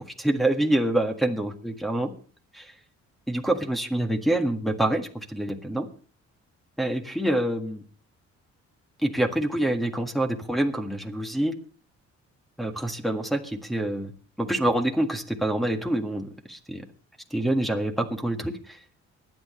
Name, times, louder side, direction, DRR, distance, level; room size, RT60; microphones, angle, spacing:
voice 1, 0.0-2.1 2.5-2.7 3.3-5.9 6.8-7.8 9.0-11.5 12.6-14.1 14.4-16.8 17.3-18.8, right 1 dB, ahead, 2 dB, 1.7 m, -26 dB
23.0 x 9.1 x 3.2 m, 0.42 s
cardioid pair, 90°, 30 cm